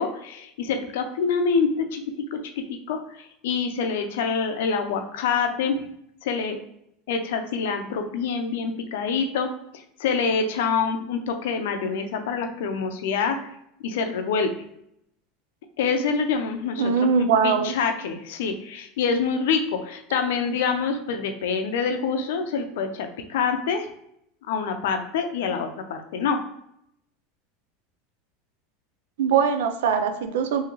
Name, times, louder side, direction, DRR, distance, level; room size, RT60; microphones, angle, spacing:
voice 1, 0.0-2.0 2.3-5.8 6.2-6.6 7.1-9.5 10.0-13.5 13.8-14.5 15.8-16.9 17.4-23.9 24.5-26.4, left 5 dB, 85° left, 6 dB, 0.5 m, -26 dB
voice 2, 16.8-17.7 29.2-30.7, right 6 dB, 90° right, 8 dB, 0.4 m, -21 dB
3.6 x 2.8 x 3.0 m, 0.75 s
supercardioid pair, 140°, 0 cm